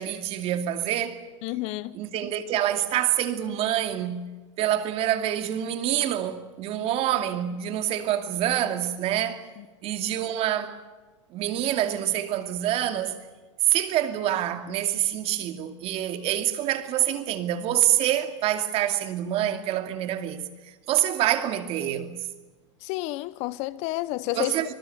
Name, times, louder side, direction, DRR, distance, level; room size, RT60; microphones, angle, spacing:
voice 1, 0.0-1.2 1.9-4.3 4.6-9.5 9.8-10.8 11.3-13.1 13.7-22.2 24.3-24.7, right 12 dB, 40° right, 2.4 m, -26 dB
voice 2, 1.4-2.0 9.6-9.7 22.8-24.7, left 18 dB, 45° left, 0.9 m, -30 dB
25.0 x 20.5 x 8.3 m
hypercardioid pair, 125°, 16 cm